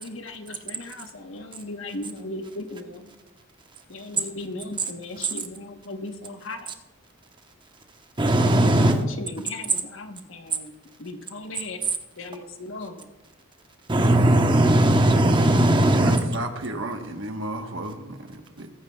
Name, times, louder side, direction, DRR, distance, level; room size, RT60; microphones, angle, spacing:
voice 1, 0.0-3.1 3.9-6.7 8.7-10.2 11.0-11.8 12.2-13.1, left 2 dB, 70° left, 6 dB, 1.1 m, -36 dB
voice 2, 8.2-9.0 13.9-16.2, right 1 dB, 25° right, 5 dB, 0.9 m, -18 dB
voice 3, 15.9-18.7, right 2 dB, 65° right, 5 dB, 1.2 m, -33 dB
21.0 x 9.4 x 2.3 m, 1.0 s
head